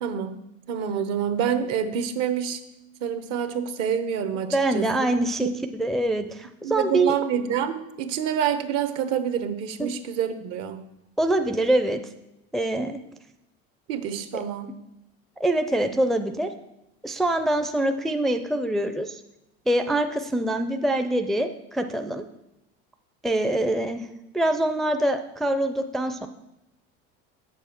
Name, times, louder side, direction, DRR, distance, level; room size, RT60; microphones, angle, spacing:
voice 1, 0.0-0.4 0.7-2.6 3.0-4.9 5.4-5.5 6.6-10.8 13.9-14.7, right 8 dB, 60° right, 10 dB, 1.0 m, -27 dB
voice 2, 4.5-7.1 9.8-9.9 11.2-12.0 12.5-13.0 15.4-16.5 17.0-19.2 19.7-22.2 23.2-24.1 24.3-26.3, right 1 dB, ahead, 7 dB, 0.4 m, -24 dB
7.9 x 7.0 x 4.4 m, 0.89 s
supercardioid pair, 110°, 30 cm